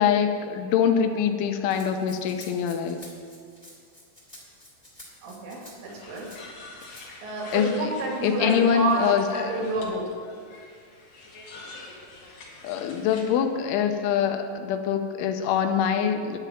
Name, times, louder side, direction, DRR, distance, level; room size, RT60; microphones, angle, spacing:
voice 1, 0.0-3.0 7.5-7.9 8.2-9.5 12.6-16.4, left 7 dB, 85° left, 7 dB, 3.1 m, -24 dB
Rattle (instrument), 1.7-6.4 6.8-7.1, left 1 dB, 5° left, 2.1 m, -49 dB
voice 2, 5.2-6.3 7.2-10.1, right 2 dB, 85° right, -2 dB, 5.0 m, -29 dB
sound 1, 5.9-13.3, left 3 dB, 55° left, 2.2 m, -45 dB
11.5 x 6.6 x 9.0 m, 2.2 s
omnidirectional pair, 5.6 m